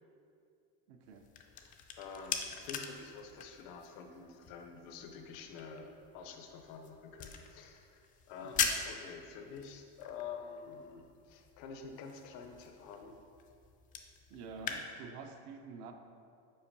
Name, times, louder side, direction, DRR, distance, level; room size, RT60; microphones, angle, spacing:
voice 1, 0.9-1.3 8.4-8.7 14.3-15.9, right 5 dB, 65° right, 5 dB, 0.6 m, -48 dB
sound 1, 1.0-14.8, left 7 dB, 25° left, 0.3 m, -43 dB
voice 2, 1.6-13.2, left 5 dB, 75° left, 5 dB, 0.7 m, -48 dB
5.6 x 4.5 x 5.1 m, 2.5 s
cardioid pair, 170°, 31 cm